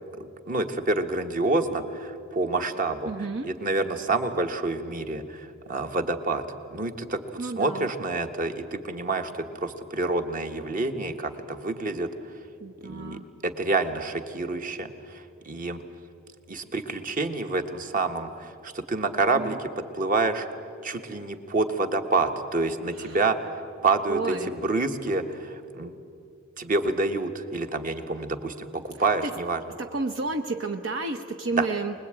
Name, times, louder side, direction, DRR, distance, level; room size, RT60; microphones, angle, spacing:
voice 1, 0.1-3.1 3.4-6.4 6.7-12.1 12.8-15.8 16.5-19.7 19.9-20.5 20.8-23.5 23.8-25.9 26.6-29.6 31.6-31.7, right 3 dB, 40° right, 7 dB, 1.4 m, -28 dB
voice 2, 3.1-3.5 7.4-7.9 12.6-13.2 19.3-19.6 23.0-23.2 24.1-24.5 29.2-29.3 29.8-31.9, right 3 dB, 65° right, 6 dB, 0.9 m, -31 dB
25.0 x 20.5 x 8.9 m, 2.5 s
head